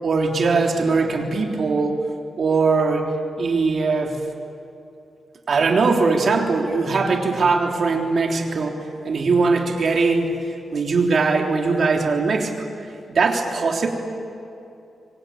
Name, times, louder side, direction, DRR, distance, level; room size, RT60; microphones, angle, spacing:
voice 1, 0.0-2.0 2.4-3.1 3.4-4.2 5.5-8.8 9.0-10.4 10.7-12.5 13.1-13.9, right 4 dB, 60° right, 2 dB, 3.6 m, -20 dB
26.5 x 24.5 x 8.9 m, 2.7 s
cardioid pair, 100°, 0 cm